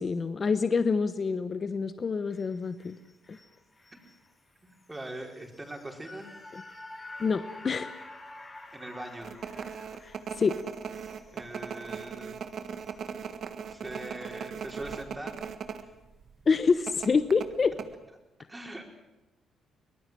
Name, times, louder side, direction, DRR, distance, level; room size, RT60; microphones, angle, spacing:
voice 1, 0.0-3.0 3.3-3.4 6.5-6.6 7.2-7.9 10.0-10.6 16.5-17.8, left 5 dB, 40° left, 11 dB, 1.0 m, -27 dB
sound 1, 2.3-14.6 15.0-15.1, left 2 dB, 25° left, 4.4 m, -50 dB
voice 2, 4.6-6.3 8.7-9.3 11.3-12.4 13.7-15.9 18.5-18.9, right 1 dB, 15° right, 2 dB, 4.8 m, -42 dB
sound 2, 9.2-15.8 16.1-16.3 16.9-17.9, right 7 dB, 60° right, 1.5 m, -38 dB
24.0 x 19.0 x 7.7 m, 1.0 s
cardioid pair, 90°, 0 cm